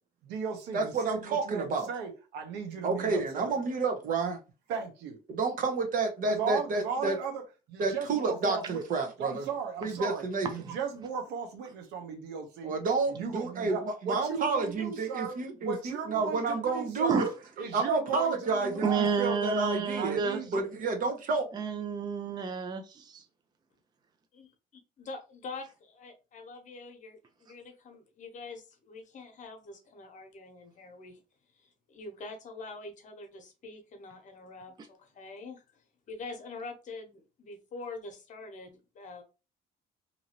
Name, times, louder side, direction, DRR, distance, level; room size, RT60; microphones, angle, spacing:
voice 1, 0.2-3.5 4.7-5.2 6.3-7.4 7.7-8.8 9.2-12.7 13.1-19.1 20.0-20.6, right 6 dB, 90° right, 0.9 m, -36 dB
voice 2, 0.7-1.9 2.8-4.4 5.3-7.1 7.8-9.5 9.8-10.5 12.6-17.3 17.6-20.2 20.5-21.5, right 4 dB, 55° right, 0.9 m, -30 dB
voice 3, 18.8-20.7 21.5-23.2, right 5 dB, 25° right, 0.4 m, -30 dB
voice 4, 25.0-31.2 31.5-39.2, left 3 dB, 45° left, 0.9 m, -45 dB
2.8 x 2.6 x 2.9 m
cardioid pair, 110°, 17 cm